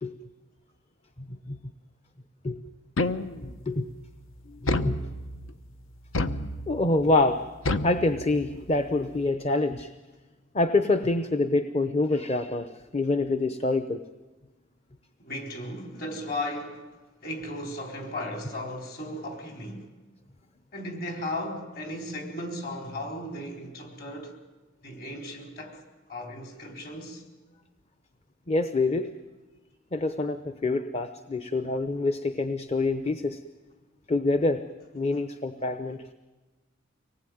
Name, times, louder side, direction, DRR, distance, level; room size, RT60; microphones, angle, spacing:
sound 1, 3.0-3.7 4.7-5.5 6.1-6.9 7.7-8.7, left 2 dB, 85° left, 1.0 m, -29 dB
voice 1, 4.6-5.0 6.7-7.5 7.8-9.9 10.5-12.7 12.9-14.0 28.5-29.1 29.9-33.4 34.1-34.6 34.9-36.1, left 2 dB, 30° left, 0.7 m, -26 dB
voice 2, 15.2-16.9 17.2-19.9 20.7-24.4 24.8-25.8 26.1-27.2, left 1 dB, 50° left, 4.1 m, -36 dB
25.0 x 19.5 x 9.3 m
head